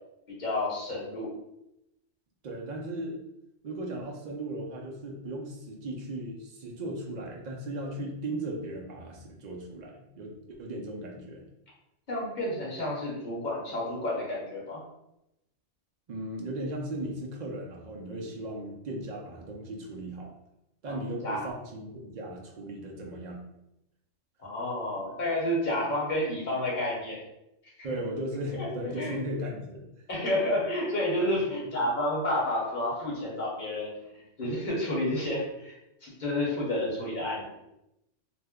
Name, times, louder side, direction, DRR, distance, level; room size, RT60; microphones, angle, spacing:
voice 1, 0.4-1.3 12.1-14.8 20.9-21.0 21.2-21.5 24.4-27.2 28.6-28.7 29.0-29.2 30.1-35.7 36.0-37.4, left 1 dB, 40° left, -5 dB, 1.0 m, -30 dB
voice 2, 2.4-3.2 3.6-11.4 16.1-20.3 20.8-23.4 27.8-29.9, right 1 dB, 75° right, -1 dB, 0.4 m, -37 dB
2.6 x 2.1 x 3.5 m, 0.86 s
omnidirectional pair, 1.3 m